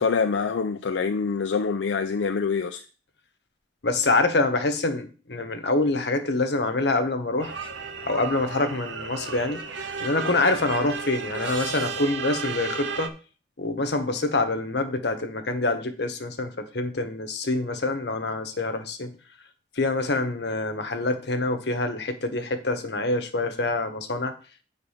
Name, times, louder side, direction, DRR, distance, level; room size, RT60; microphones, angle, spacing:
voice 1, 0.0-2.9, left 5 dB, 80° left, 0.4 m, -25 dB
voice 2, 3.8-7.5 8.0-9.6 10.0-13.1 13.6-19.1 19.8-24.3, left 2 dB, 65° left, 1.0 m, -26 dB
sound 1, 7.4-13.1, right 5 dB, 80° right, 0.9 m, -34 dB
8.1 x 3.9 x 5.6 m
head